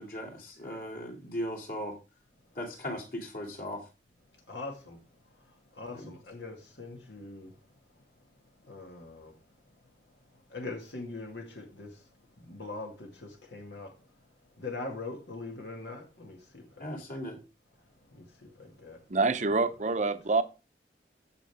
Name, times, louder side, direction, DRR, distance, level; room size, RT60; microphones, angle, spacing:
voice 1, 0.0-2.0 2.5-3.8 5.9-6.2 16.8-17.4, equal, 55° left, 2.8 m, -38 dB
voice 2, 4.5-5.0 5.7-7.5 8.7-9.3 10.5-11.9 12.4-13.9 14.6-17.0 18.1-19.0, left 3 dB, 85° left, 2.0 m, -42 dB
voice 3, 19.1-20.4, right 3 dB, 40° right, 0.7 m, -26 dB
15.0 x 5.1 x 3.5 m
head